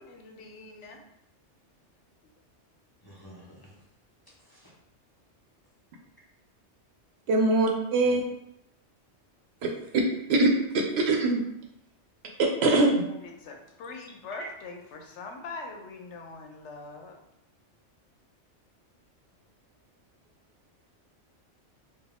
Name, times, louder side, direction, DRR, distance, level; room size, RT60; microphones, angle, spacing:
voice 1, 0.1-1.0 13.2-17.2, left 3 dB, 75° left, 0.9 m, -42 dB
voice 2, 3.0-3.8 4.3-4.7 8.0-8.2 14.4-14.5, right 3 dB, 20° left, 0.8 m, -47 dB
voice 3, 7.3-8.2 9.6-9.7 10.3-11.4 12.4-13.0, right 2 dB, 70° right, 0.8 m, -23 dB
4.0 x 2.3 x 3.5 m
omnidirectional pair, 1.2 m